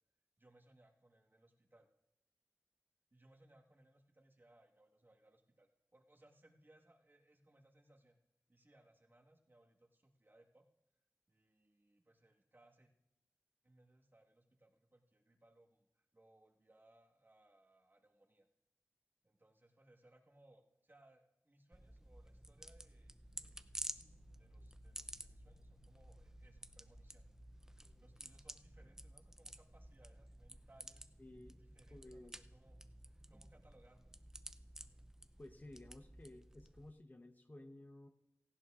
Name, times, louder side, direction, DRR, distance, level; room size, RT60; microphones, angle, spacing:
voice 1, 0.4-1.9 3.1-8.2 8.5-10.6 11.3-12.9 13.6-18.5 19.2-23.2 24.4-27.2 28.0-31.1 31.5-34.2, right 1 dB, 35° right, 1 dB, 1.6 m, -68 dB
sound 1, 21.7-36.9, right 1 dB, 10° right, 0.6 m, -53 dB
sound 2, 23.2-29.0, left 5 dB, 55° left, 2.8 m, -72 dB
voice 2, 31.2-32.4 35.4-38.1, left 1 dB, 35° left, 6 dB, 0.9 m, -55 dB
17.5 x 15.5 x 2.5 m, 0.88 s
cardioid pair, 50°, 6 cm